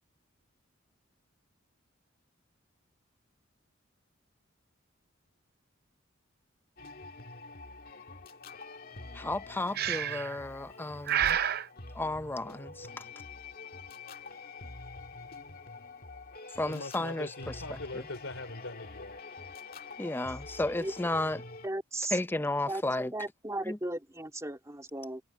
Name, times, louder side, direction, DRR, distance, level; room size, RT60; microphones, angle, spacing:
sound 1, 6.8-21.7, left 3 dB, 45° left, 2.0 m, -46 dB
voice 1, 9.2-11.4 12.0-12.9 16.6-17.5 20.0-21.4 22.1-23.1 23.7-23.8, left 2 dB, 10° left, 0.5 m, -33 dB
Breathing, 9.7-10.4 11.1-11.7, right 10 dB, 50° right, 0.6 m, -29 dB
voice 2, 16.6-19.2, left 2 dB, 75° left, 4.0 m, -42 dB
voice 3, 21.6-22.2 22.7-22.8 23.1-25.2, right 1 dB, 15° right, 3.0 m, -36 dB
head